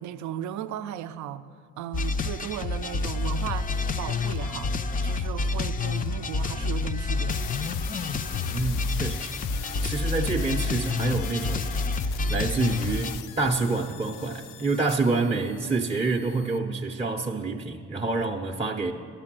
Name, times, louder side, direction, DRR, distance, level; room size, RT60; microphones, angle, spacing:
voice 1, 0.0-1.5 1.8-3.7 4.0-4.7 5.0-7.4 14.9-15.2, right 10 dB, 70° right, 0.5 m, -36 dB
sound 1, 1.9-13.2, left 3 dB, 30° left, 0.4 m, -28 dB
sound 2, 7.3-16.6, left 10 dB, 85° left, 0.5 m, -42 dB
voice 2, 8.5-11.7 12.3-18.9, right 3 dB, 20° right, 0.5 m, -27 dB
11.0 x 6.8 x 7.4 m
cardioid pair, 90°, 30 cm